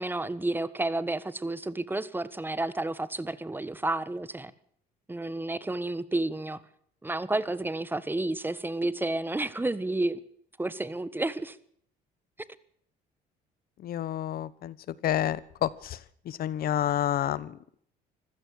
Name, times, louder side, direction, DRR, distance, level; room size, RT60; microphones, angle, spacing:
voice 1, 0.0-4.5 5.1-6.6 7.0-10.2 10.6-11.6, right 2 dB, 10° right, 16 dB, 1.4 m, -31 dB
voice 2, 13.8-17.6, left 11 dB, 60° left, 19 dB, 1.1 m, -30 dB
25.0 x 16.0 x 6.5 m, 0.63 s
cardioid pair, 110°, 17 cm